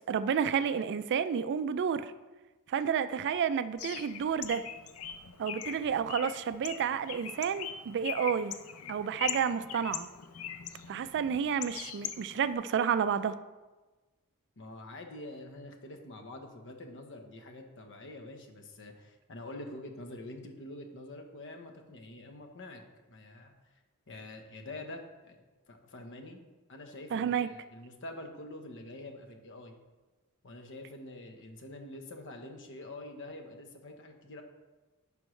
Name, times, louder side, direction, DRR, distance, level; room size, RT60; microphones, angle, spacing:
voice 1, 0.1-2.1 2.7-4.6 5.4-8.6 8.9-10.1 10.9-13.3 27.1-27.5, right 7 dB, 55° right, 13 dB, 0.3 m, -30 dB
Bird, 3.8-12.5, left 9 dB, 75° left, 0.5 m, -42 dB
voice 2, 14.6-23.5 24.1-25.4 25.7-26.4 26.7-29.7 30.4-34.4, left 1 dB, 60° left, 4 dB, 1.0 m, -46 dB
11.0 x 5.3 x 3.2 m, 1.2 s
head